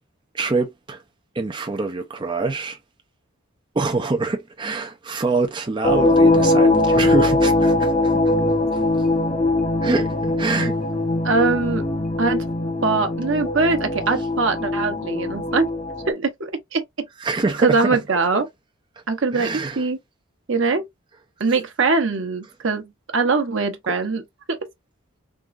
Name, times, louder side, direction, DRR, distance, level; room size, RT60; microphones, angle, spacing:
voice 1, 0.3-1.0 1.3-2.8 3.7-8.3 8.7-8.8 9.8-10.8 17.2-18.0 19.3-19.8, right 3 dB, 20° right, 0.4 m, -25 dB
sound 1, 5.8-16.1, left 2 dB, 30° left, 0.8 m, -21 dB
voice 2, 11.2-11.8 12.2-12.5 12.8-15.7 16.1-16.8 17.6-18.5 19.1-20.0 20.5-20.9 21.4-24.2 24.5-24.6, right 4 dB, 60° right, 0.9 m, -22 dB
3.7 x 3.0 x 2.4 m
head